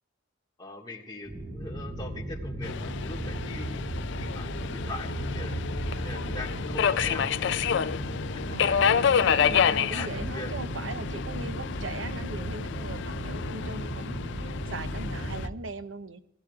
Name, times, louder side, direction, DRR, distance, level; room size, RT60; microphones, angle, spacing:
voice 1, 0.6-3.8 4.1-5.6 6.0-7.9 8.5-10.5, left 2 dB, 20° left, 0 dB, 1.9 m, -41 dB
sound 1, 1.3-15.5, right 1 dB, 30° right, 2.2 m, -36 dB
Subway metro underground, 2.6-15.5, left 7 dB, 65° left, 0.4 m, -29 dB
voice 2, 8.5-16.2, right 3 dB, 80° right, 10 dB, 0.8 m, -40 dB
17.5 x 16.0 x 2.4 m, 0.84 s
head